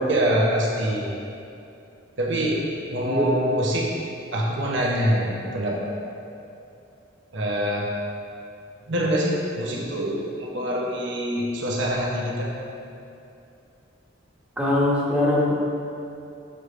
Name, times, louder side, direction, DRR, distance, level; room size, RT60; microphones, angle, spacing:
voice 1, 0.1-1.1 2.2-3.9 4.3-6.1 7.3-7.9 8.9-12.5, equal, 65° right, -2 dB, 1.0 m, -25 dB
voice 2, 14.6-15.5, left 1 dB, 5° right, -6 dB, 1.2 m, -21 dB
6.6 x 6.5 x 3.3 m, 2.7 s
head